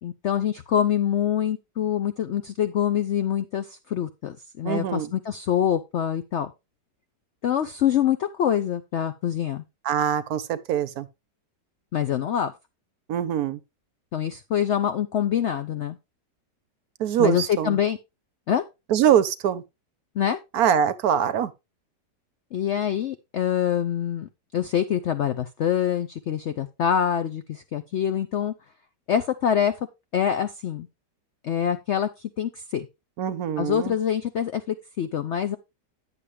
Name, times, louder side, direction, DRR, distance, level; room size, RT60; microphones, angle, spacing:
voice 1, 0.0-6.5 7.4-9.6 11.9-12.5 14.1-16.0 17.2-18.0 18.5-18.6 20.2-20.4 22.5-28.5 29.1-29.7 30.1-30.9 31.4-32.9 33.6-35.6, left 9 dB, 85° left, 0.6 m, -25 dB
voice 2, 4.6-5.1 9.8-11.1 13.1-13.6 17.0-17.8 18.9-19.6 20.5-21.5 33.2-33.9, right 9 dB, 70° right, 1.0 m, -23 dB
10.0 x 6.9 x 3.4 m
omnidirectional pair, 1.9 m